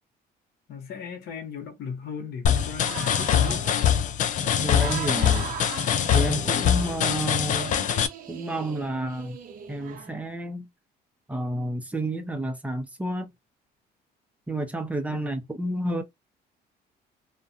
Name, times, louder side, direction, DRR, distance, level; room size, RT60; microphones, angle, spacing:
voice 1, 0.7-3.6 15.1-15.4, left 6 dB, 70° left, 1.0 m, -37 dB
sound 1, 2.4-8.1, left 9 dB, 50° left, 0.4 m, -23 dB
sound 2, 2.5-7.2 7.5-10.3, right 7 dB, 55° right, 0.5 m, -39 dB
voice 2, 4.6-5.5 6.1-7.7 8.3-9.4 9.7-10.7 11.3-13.3 14.5-16.0, right 1 dB, 10° right, 0.6 m, -30 dB
2.4 x 2.2 x 2.7 m
cardioid pair, 110°, 17 cm